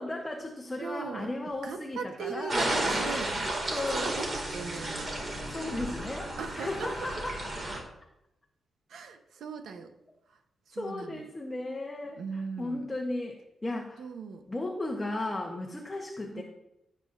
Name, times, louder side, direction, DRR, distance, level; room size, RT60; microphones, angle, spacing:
voice 1, 0.0-2.8 3.7-4.1 5.5-7.4 10.7-14.0 14.5-16.4, left 2 dB, 15° left, 0 dB, 1.1 m, -35 dB
voice 2, 0.8-1.3 1.6-3.6 3.9-5.1 6.4-6.9 8.9-9.9 10.7-11.2 12.2-12.9 14.0-14.4 16.3-16.4, right 5 dB, 85° right, 6 dB, 1.0 m, -38 dB
sound 1, 2.5-7.8, right 1 dB, 35° right, 2.4 m, -33 dB
Bowed string instrument, 3.8-7.0, equal, 55° right, 3.7 m, -47 dB
16.5 x 7.9 x 2.6 m, 0.84 s
wide cardioid pair, 150°, 0 cm